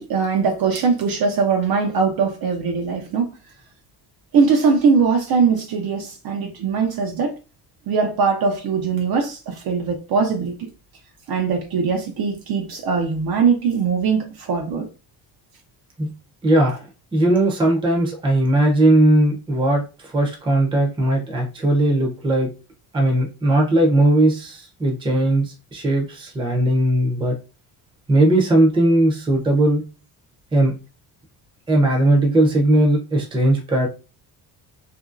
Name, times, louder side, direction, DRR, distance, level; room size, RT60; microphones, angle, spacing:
voice 1, 0.0-3.3 4.3-7.4 7.9-10.7 11.3-14.9, right 5 dB, 60° right, 0.6 m, -21 dB
voice 2, 16.4-22.5 22.9-27.4 28.1-29.8 30.5-30.7 31.7-33.9, right 1 dB, 10° right, 0.6 m, -18 dB
2.8 x 2.6 x 2.5 m
cardioid pair, 145°, 40 cm